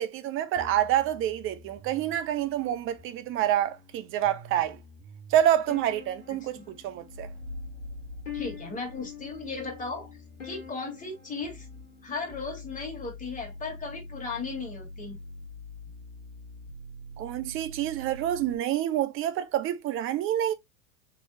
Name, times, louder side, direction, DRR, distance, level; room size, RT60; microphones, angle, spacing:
voice 1, 0.0-4.8 5.3-7.3 17.2-20.5, right 11 dB, 35° right, 0.6 m, -27 dB
sound 1, 0.6-18.6, left 1 dB, 65° right, 1.5 m, -47 dB
sound 2, 5.7-12.8, left 9 dB, 85° left, 1.4 m, -46 dB
sound 3, 7.1-10.4, left 1 dB, 65° left, 1.6 m, -44 dB
voice 2, 8.3-10.1 10.4-11.7 12.0-15.2, left 4 dB, 20° left, 2.0 m, -36 dB
3.8 x 3.0 x 2.7 m
hypercardioid pair, 90°, 39 cm